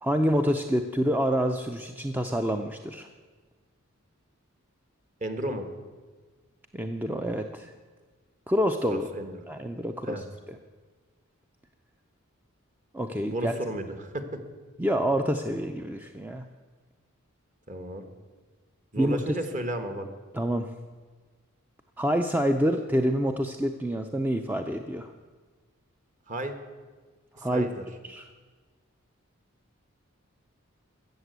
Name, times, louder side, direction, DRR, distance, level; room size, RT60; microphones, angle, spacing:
voice 1, 0.0-3.1 6.7-7.7 8.5-9.1 9.5-10.2 12.9-13.5 14.8-16.5 19.0-19.2 20.3-20.7 22.0-25.1 27.4-27.7 28.0-28.3, equal, 10° right, 6 dB, 0.4 m, -27 dB
voice 2, 5.2-5.7 8.9-9.3 10.0-10.2 13.2-14.4 17.7-18.1 18.9-20.1 26.3-26.5 27.4-27.8, right 1 dB, 35° right, 8 dB, 1.3 m, -33 dB
14.5 x 7.4 x 8.0 m, 1.4 s
head